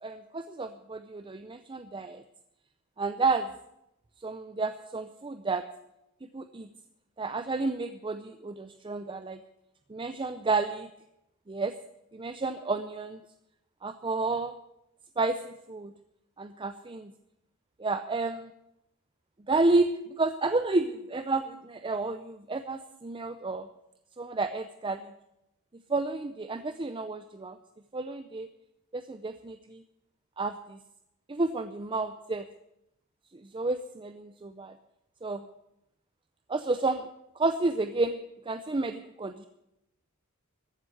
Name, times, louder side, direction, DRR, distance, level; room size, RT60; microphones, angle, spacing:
voice 1, 0.0-2.2 3.0-3.5 4.2-5.6 6.3-6.7 7.2-9.4 9.9-10.9 11.5-11.7 12.1-13.2 13.8-14.5 15.2-15.9 16.4-17.1 17.8-18.5 19.5-23.7 24.2-25.1 25.9-27.6 27.9-28.5 28.9-29.8 30.4-30.8 31.3-32.5 33.3-34.8 35.2-35.5 36.5-37.1 37.4-39.5, right 3 dB, 25° right, 10 dB, 0.5 m, -31 dB
14.0 x 8.0 x 9.9 m, 0.86 s
head